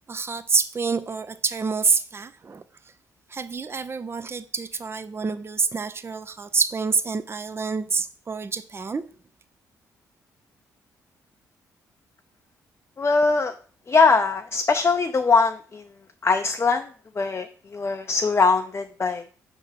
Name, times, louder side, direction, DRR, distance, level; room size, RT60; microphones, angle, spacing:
voice 1, 0.1-2.6 3.3-9.0, right 5 dB, 30° right, 11 dB, 0.6 m, -27 dB
voice 2, 13.0-13.5 13.9-15.8 16.2-16.9 17.2-17.5 17.7-19.2, left 4 dB, 30° left, 5 dB, 0.6 m, -21 dB
5.3 x 3.6 x 5.8 m, 0.42 s
hypercardioid pair, 45°, 8 cm